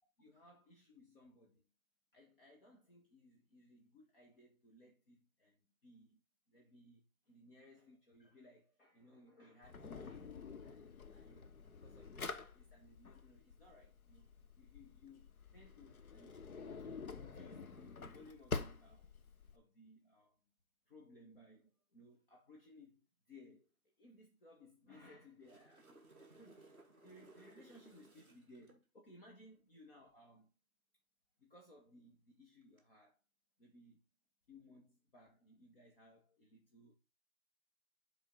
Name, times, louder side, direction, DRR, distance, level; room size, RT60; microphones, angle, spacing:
voice 1, 0.2-1.6 2.1-6.2 6.5-14.3 14.6-16.4 17.1-19.1 19.5-20.4 20.9-30.5 31.4-33.2 33.6-34.0 34.5-37.0, left 1 dB, 40° left, 1.7 m, -62 dB
Drawer open or close, 9.6-19.6, left 4 dB, 90° left, 1.2 m, -48 dB
sound 1, 25.2-28.8 32.6-32.8, right 2 dB, 10° left, 1.0 m, -62 dB
7.1 x 4.3 x 4.0 m
hypercardioid pair, 165°, 42 cm